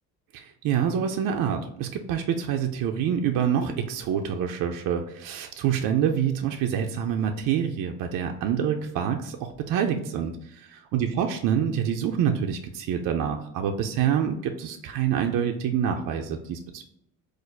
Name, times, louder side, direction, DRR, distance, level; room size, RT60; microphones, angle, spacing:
voice 1, 0.3-16.8, right 8 dB, 60° right, 4 dB, 0.5 m, -26 dB
4.3 x 2.5 x 2.3 m, 0.78 s
cardioid pair, 125°, 37 cm